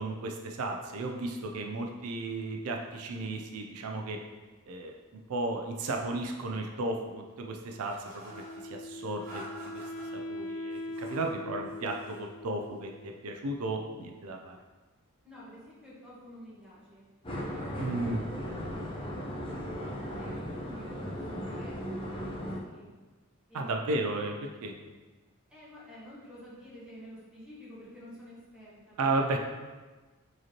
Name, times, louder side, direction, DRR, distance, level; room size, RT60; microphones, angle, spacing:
voice 1, 0.0-4.2 4.7-4.9 5.3-9.8 10.1-14.6 17.8-18.2 23.5-24.7 29.0-29.4, right 2 dB, 80° right, 2 dB, 0.4 m, -34 dB
sound 1, 7.8-8.6 9.2-10.1 10.7-11.3 11.7-12.3, right 1 dB, 40° right, 1.3 m, -48 dB
Wind instrument woodwind instrument, 8.3-13.3, left 1 dB, 90° left, 0.7 m, -41 dB
voice 2, 15.2-17.1 17.5-22.9 23.5-24.0 25.5-29.4, equal, 5° right, -10 dB, 1.3 m, -50 dB
sound 2, 17.2-22.6, equal, 25° left, 0.6 m, -37 dB
4.9 x 3.1 x 2.9 m, 1.3 s
head